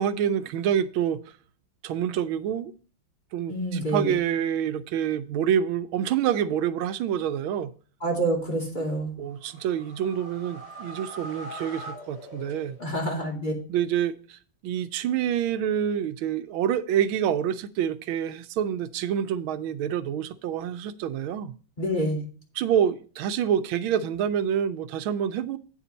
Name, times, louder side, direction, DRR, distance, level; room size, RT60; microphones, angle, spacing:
voice 1, 0.0-1.4 1.8-2.7 3.3-7.7 9.2-12.8 13.7-21.5 22.5-25.6, right 9 dB, 85° right, 1.4 m, -27 dB
voice 2, 3.5-4.1 8.0-9.1 12.8-13.5 21.8-22.2, right 1 dB, 20° left, 2.7 m, -27 dB
sound 1, 9.3-13.1, right 1 dB, 55° left, 6.2 m, -42 dB
9.2 x 7.2 x 4.1 m
omnidirectional pair, 2.2 m